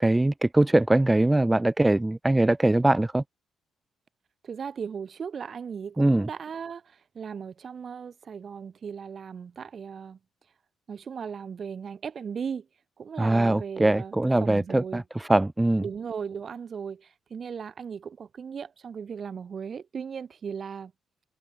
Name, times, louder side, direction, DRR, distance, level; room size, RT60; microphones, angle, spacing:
voice 1, 0.0-3.2 6.0-6.3 13.2-15.8, right 2 dB, 10° right, 0.4 m, -22 dB
voice 2, 4.4-10.2 10.9-12.7 13.0-15.0 15.8-20.9, right 6 dB, 45° right, 1.0 m, -37 dB
cardioid pair, 90°, 0 cm